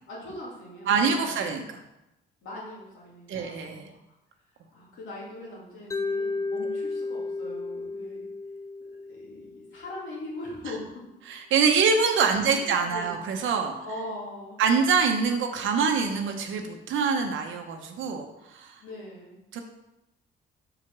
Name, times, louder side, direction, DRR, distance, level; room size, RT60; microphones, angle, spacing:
voice 1, 0.1-1.4 2.4-4.0 4.7-8.3 9.1-10.8 12.4-13.1 13.8-14.6 18.8-19.4, left 1 dB, 85° left, -4 dB, 2.6 m, -41 dB
voice 2, 0.9-1.6 3.3-3.8 11.3-13.7 14.6-18.8 19.5-19.6, right 5 dB, 75° right, 3 dB, 0.8 m, -25 dB
Mallet percussion, 5.9-10.0, left 3 dB, 15° left, 0.5 m, -33 dB
4.9 x 4.7 x 6.0 m, 0.92 s
cardioid pair, 90°, 20 cm